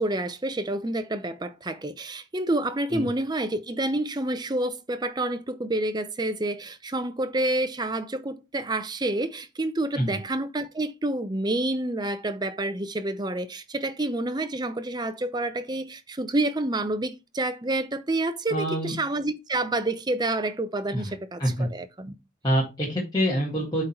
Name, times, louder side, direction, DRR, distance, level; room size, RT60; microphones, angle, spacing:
voice 1, 0.0-22.1, right 2 dB, 20° right, 0.6 m, -28 dB
voice 2, 18.5-18.9 20.9-21.1 21.4-21.7 22.4-23.8, equal, 20° left, 1.7 m, -26 dB
8.3 x 3.9 x 4.4 m
head